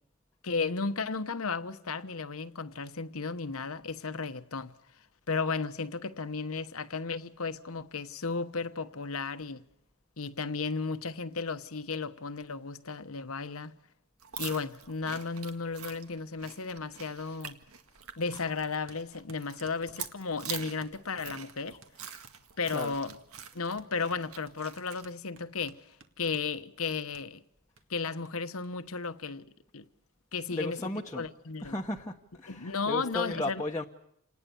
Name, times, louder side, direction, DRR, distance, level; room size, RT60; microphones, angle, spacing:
voice 1, 0.4-4.7 5.3-9.6 10.2-13.8 14.4-17.6 18.2-21.8 22.6-23.1 23.5-27.4 27.9-29.5 29.7-29.9 30.3-30.8 31.2-31.7 32.5-33.6, left 4 dB, 80° left, 1.1 m, -34 dB
sound 1, 14.2-25.1, right 8 dB, 90° right, 1.8 m, -45 dB
sound 2, 18.3-18.5 18.9-22.0 22.2-22.4 22.7-22.8 23.1-26.5 27.1-27.3 27.8-27.9 28.3-28.4 28.6-28.7 29.0-29.7, right 4 dB, 60° right, 2.1 m, -57 dB
voice 2, 30.5-31.3 31.6-33.8, left 2 dB, 15° left, 1.0 m, -35 dB
28.0 x 19.5 x 7.0 m
head